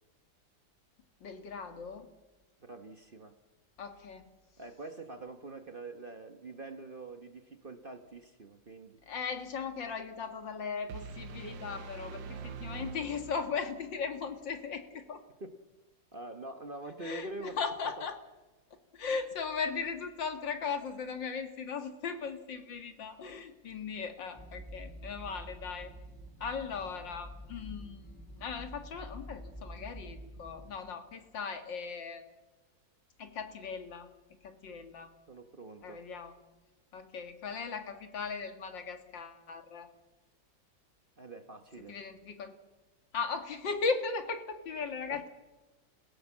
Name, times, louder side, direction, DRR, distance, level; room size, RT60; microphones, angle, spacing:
voice 1, 1.2-2.1 3.8-4.2 9.1-15.2 17.0-18.2 18.9-25.9 26.4-28.0 28.4-32.2 33.2-34.1 34.4-35.1 35.8-36.3 36.9-39.9 41.9-42.6 43.1-45.3, left 5 dB, 80° left, 7 dB, 2.5 m, -38 dB
voice 2, 2.6-3.4 4.6-9.0 15.4-15.6 16.1-17.6 35.3-36.0 41.2-42.0 45.1-45.3, right 2 dB, 35° right, 8 dB, 1.1 m, -45 dB
sound 1, 10.9-13.9, right 5 dB, 85° right, 1.7 m, -44 dB
sound 2, 24.3-30.7, equal, 10° left, 4.7 m, -47 dB
27.5 x 17.0 x 7.3 m, 1.2 s
omnidirectional pair, 2.0 m